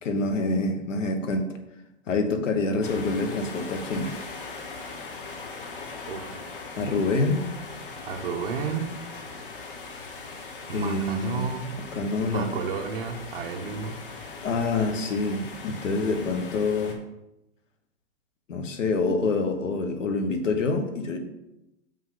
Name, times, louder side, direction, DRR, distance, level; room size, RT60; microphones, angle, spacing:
voice 1, 0.0-1.5 2.1-4.1 6.8-7.5 10.7-11.5 11.9-12.6 14.4-17.0 18.5-21.2, left 3 dB, 85° left, 6 dB, 1.3 m, -26 dB
sound 1, 2.8-16.9, left 4 dB, 45° left, 1.0 m, -40 dB
voice 2, 6.1-6.4 8.0-8.9 10.7-11.7 12.3-14.0, right 5 dB, 50° right, 4 dB, 1.0 m, -32 dB
7.2 x 5.7 x 3.8 m, 0.90 s
hypercardioid pair, 175°, 37 cm